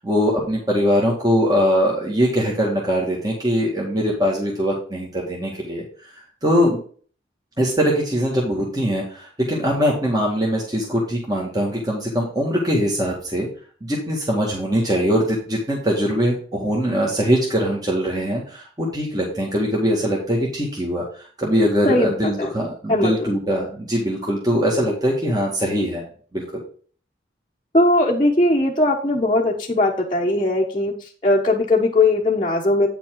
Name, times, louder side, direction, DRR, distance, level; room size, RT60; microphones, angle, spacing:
voice 1, 0.0-5.8 6.4-6.8 7.6-13.5 13.8-21.0 21.4-26.0 26.3-26.6, equal, 20° right, -3 dB, 2.1 m, -21 dB
voice 2, 21.8-22.5 22.9-23.3 27.7-32.9, left 2 dB, 25° left, -4 dB, 1.1 m, -19 dB
9.1 x 6.0 x 3.9 m, 0.43 s
head